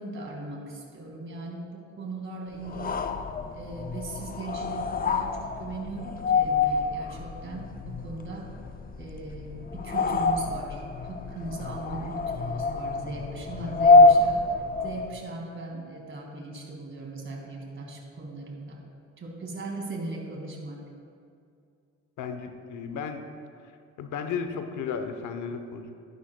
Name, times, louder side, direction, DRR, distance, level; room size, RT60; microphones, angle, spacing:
voice 1, 0.0-3.0 3.5-8.5 9.0-14.4 14.8-18.9 19.2-20.9, right 2 dB, 40° right, 0 dB, 2.1 m, -38 dB
sound 1, 2.6-15.2, left 3 dB, 30° left, 0.5 m, -25 dB
voice 2, 22.2-23.2 24.0-25.9, left 6 dB, 80° left, 7 dB, 0.8 m, -34 dB
12.0 x 10.5 x 2.2 m, 2.4 s
cardioid pair, 90°, 30 cm